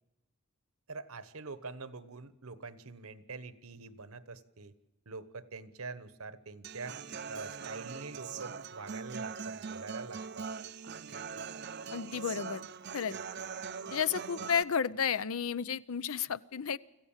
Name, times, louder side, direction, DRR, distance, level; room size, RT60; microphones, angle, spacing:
voice 1, 0.9-4.7 5.1-7.0 7.3-10.5, right 4 dB, 80° right, 14 dB, 1.2 m, -45 dB
Human voice / Acoustic guitar, 6.6-14.6, right 5 dB, 50° right, 0.6 m, -42 dB
voice 2, 11.9-12.7 12.9-13.2 13.9-16.8, left 7 dB, 75° left, 18 dB, 0.6 m, -32 dB
25.5 x 15.5 x 7.3 m, 0.98 s
head